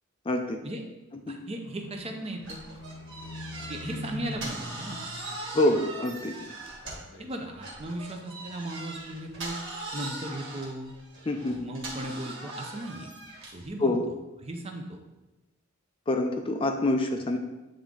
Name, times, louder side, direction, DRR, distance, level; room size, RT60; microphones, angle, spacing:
voice 1, 0.3-0.6 1.3-1.4 5.5-6.3 11.3-11.6 13.8-14.0 16.1-17.4, left 1 dB, 25° left, 4 dB, 0.4 m, -26 dB
voice 2, 1.3-2.6 3.7-5.0 7.2-9.6 9.9-10.9 11.4-13.1 13.5-14.0 14.4-15.0, right 1 dB, 30° right, 3 dB, 0.7 m, -37 dB
Livestock farm animals working animals, 1.6-6.4 6.7-7.4 7.8-7.9, left 1 dB, 60° left, 0.9 m, -43 dB
sound 1, 2.4-7.2 7.6-13.7, right 2 dB, 60° right, 1.6 m, -40 dB
8.8 x 3.6 x 3.8 m, 1.1 s
head